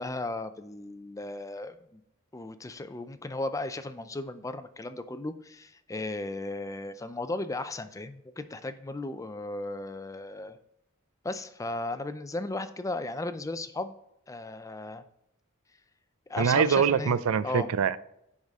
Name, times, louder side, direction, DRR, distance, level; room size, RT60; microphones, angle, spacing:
voice 1, 0.0-2.0 2.3-10.6 11.2-13.9 14.3-15.0 16.3-17.1 17.4-17.7, left 2 dB, 15° left, 11 dB, 0.4 m, -35 dB
voice 2, 16.4-18.0, right 6 dB, 80° right, 16 dB, 0.4 m, -24 dB
10.5 x 4.9 x 3.6 m, 0.79 s
head